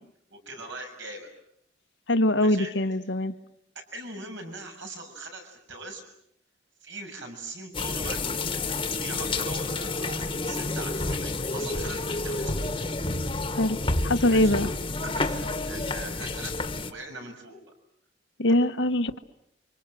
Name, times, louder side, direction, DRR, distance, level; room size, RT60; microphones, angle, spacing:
voice 1, 0.3-1.3 2.4-2.7 3.7-6.0 6.8-12.5 14.3-14.5 15.0-17.6 18.4-18.6, right 2 dB, 70° right, 3 dB, 7.0 m, -41 dB
voice 2, 2.1-3.3 13.6-13.8 14.0-14.7 18.4-19.2, left 1 dB, 70° left, 9 dB, 1.2 m, -23 dB
sound 1, 7.7-16.9, left 3 dB, 25° left, 1.5 m, -29 dB
30.0 x 25.5 x 7.7 m, 0.71 s
head